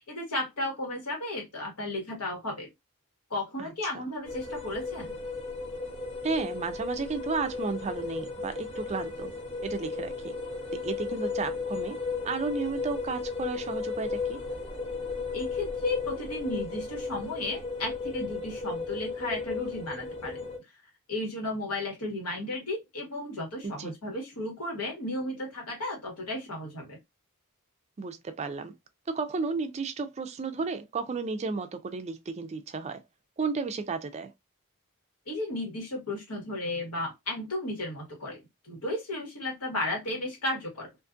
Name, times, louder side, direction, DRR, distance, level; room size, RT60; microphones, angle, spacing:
voice 1, 0.1-2.7 3.3-5.2 15.3-20.5 21.1-27.0 35.3-40.9, left 1 dB, 90° left, 1.4 m, -34 dB
voice 2, 3.6-4.0 6.2-9.3 9.6-10.3 10.7-12.0 12.2-14.4 23.6-23.9 28.0-28.7 29.1-33.0 33.4-34.3, right 4 dB, 30° right, 0.4 m, -33 dB
sound 1, 4.2-20.6, left 4 dB, 25° left, 0.9 m, -35 dB
2.5 x 2.5 x 2.4 m
head